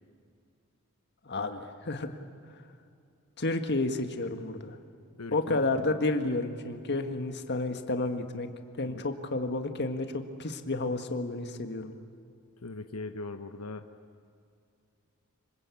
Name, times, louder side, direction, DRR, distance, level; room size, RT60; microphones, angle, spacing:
voice 1, 1.2-2.1 3.4-4.8 5.3-8.5 8.8-11.9, left 2 dB, 50° left, 7 dB, 1.8 m, -31 dB
voice 2, 5.2-6.0 8.8-9.0 12.6-13.9, left 2 dB, 90° left, 8 dB, 1.1 m, -40 dB
26.0 x 25.5 x 8.5 m, 2.5 s
head